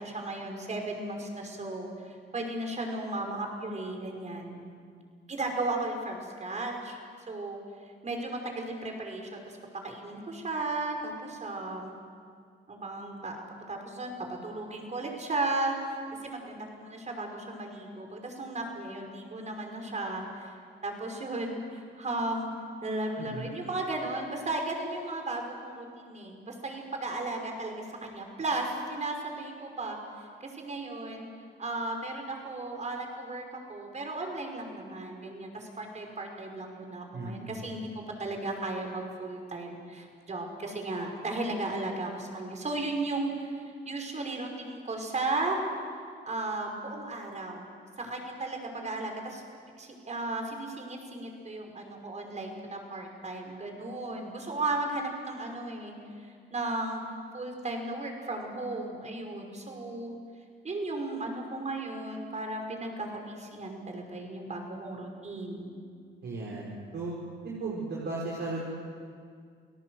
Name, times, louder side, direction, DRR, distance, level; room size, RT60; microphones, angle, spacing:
voice 1, 0.0-4.6 5.3-7.0 7.3-11.9 12.7-13.4 13.7-16.0 16.2-20.6 20.8-22.5 22.8-31.3 31.6-37.8 38.2-45.6 46.2-47.7 48.0-49.4 49.8-56.0 56.2-57.0 57.3-60.2 60.6-65.8, right 2 dB, 35° right, 2 dB, 5.5 m, -35 dB
voice 2, 23.2-23.5 37.1-37.7 66.2-67.2 67.4-68.7, right 2 dB, 60° right, -4 dB, 5.0 m, -36 dB
29.5 x 18.0 x 8.0 m, 2.2 s
cardioid pair, 90°, 20 cm